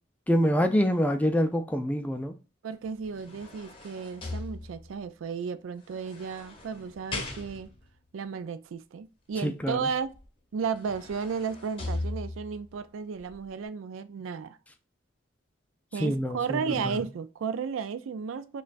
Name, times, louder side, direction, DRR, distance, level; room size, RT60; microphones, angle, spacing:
voice 1, 0.3-2.4 9.4-9.8 16.0-16.8, equal, 5° left, 0.3 m, -25 dB
voice 2, 2.6-7.7 8.1-10.1 10.5-14.6 15.9-18.6, right 6 dB, 85° right, 0.4 m, -34 dB
sound 1, 2.8-5.1 5.9-7.9 10.1-10.2 10.6-12.6 13.2-13.3, left 2 dB, 25° left, 0.8 m, -38 dB
5.1 x 2.3 x 2.5 m
head